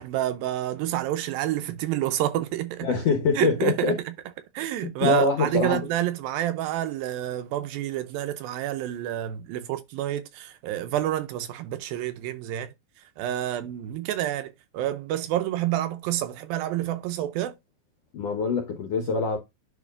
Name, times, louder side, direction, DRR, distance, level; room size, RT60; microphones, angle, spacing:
voice 1, 0.0-2.9 3.4-4.1 4.5-12.7 13.2-17.6, right 13 dB, 80° right, 2.3 m, -28 dB
voice 2, 2.8-4.0 5.0-5.8 18.1-19.4, left 4 dB, 70° left, 1.5 m, -24 dB
10.5 x 3.9 x 2.4 m
omnidirectional pair, 4.5 m